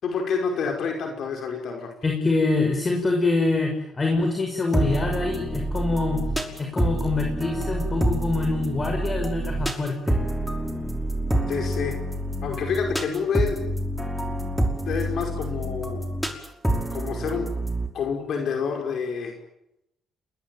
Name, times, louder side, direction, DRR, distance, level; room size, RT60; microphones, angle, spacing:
voice 1, 0.0-1.9 11.5-12.0 12.4-13.7 14.9-16.0 16.9-17.5 17.9-19.3, left 6 dB, 65° left, 3 dB, 5.3 m, -28 dB
voice 2, 2.0-6.2 6.6-10.2, left 3 dB, 30° left, 3 dB, 6.1 m, -25 dB
sound 1, 4.7-17.9, right 1 dB, ahead, 5.4 m, -27 dB
29.0 x 21.5 x 9.3 m, 0.84 s
cardioid pair, 90°, 0 cm